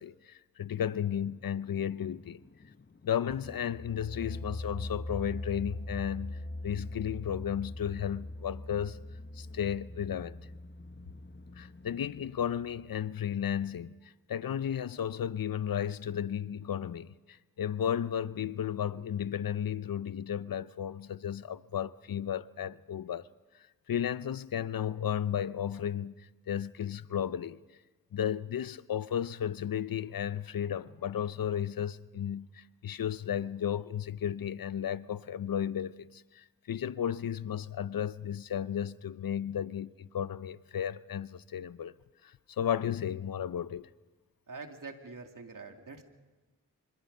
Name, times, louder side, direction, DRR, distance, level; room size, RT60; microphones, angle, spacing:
voice 1, 0.0-2.4 3.0-9.0 9.3-10.4 11.6-23.3 23.9-26.2 26.5-27.6 28.1-41.9 42.2-43.9, left 9 dB, 75° left, 0.7 m, -34 dB
sound 1, 0.8-12.3, left 4 dB, 30° left, 1.1 m, -57 dB
sound 2, 3.3-12.9, left 1 dB, 15° left, 0.7 m, -42 dB
voice 2, 44.5-46.0, right 4 dB, 65° right, 2.6 m, -45 dB
25.5 x 25.5 x 5.4 m
cardioid pair, 45°, 35 cm